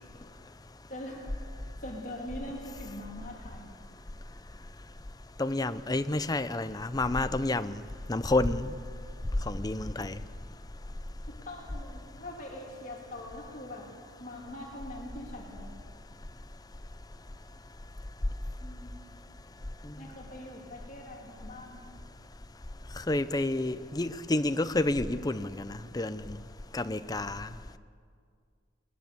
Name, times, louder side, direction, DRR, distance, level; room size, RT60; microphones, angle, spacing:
voice 1, 0.9-1.3 1.8-3.8 11.3-13.9 14.2-15.7 18.6-19.0 20.0-21.9, left 1 dB, 45° left, -1 dB, 3.1 m, -43 dB
voice 2, 5.4-7.8 8.1-8.7 9.5-10.2 23.1-26.4 26.7-27.5, left 2 dB, 20° left, 12 dB, 0.6 m, -29 dB
22.0 x 20.5 x 7.0 m, 2.1 s
head